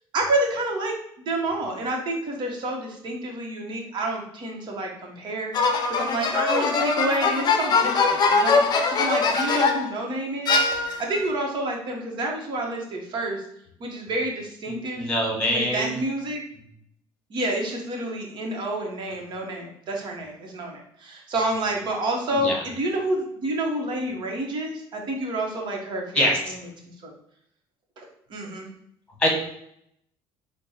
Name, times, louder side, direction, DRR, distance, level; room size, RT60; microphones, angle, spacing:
voice 1, 0.1-5.5 5.9-10.7 11.0-13.4 13.8-15.1 15.5-16.4 17.3-26.6 27.0-27.1 28.0-28.7, right 1 dB, 50° right, 0 dB, 1.1 m, -29 dB
sound 1, 5.5-9.9 10.5-11.2, left 4 dB, 40° left, 0.6 m, -22 dB
voice 2, 14.7-16.0 22.3-22.6 26.1-26.4 29.2-29.3, equal, 10° left, -1 dB, 1.5 m, -24 dB
4.3 x 2.2 x 4.2 m, 0.72 s
cardioid pair, 110°, 10 cm